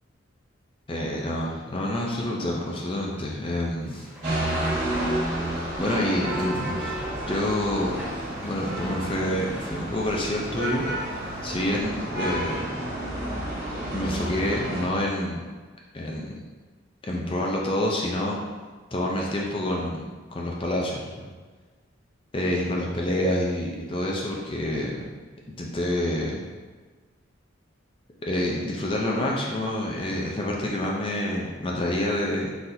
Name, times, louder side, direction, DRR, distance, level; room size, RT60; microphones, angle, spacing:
voice 1, 0.9-4.1 5.8-7.0 7.3-8.0 8.4-12.7 13.9-15.4 15.9-16.4 17.0-18.4 18.9-20.0 20.3-21.3 22.3-25.1 25.6-26.4 28.2-32.6, left 1 dB, 25° left, -2 dB, 0.4 m, -27 dB
sound 1, 3.8-11.8, right 1 dB, 10° right, 1.5 m, -43 dB
sound 2, 4.2-14.8, right 1 dB, 50° right, 1.1 m, -30 dB
4.2 x 3.9 x 2.6 m, 1.4 s
head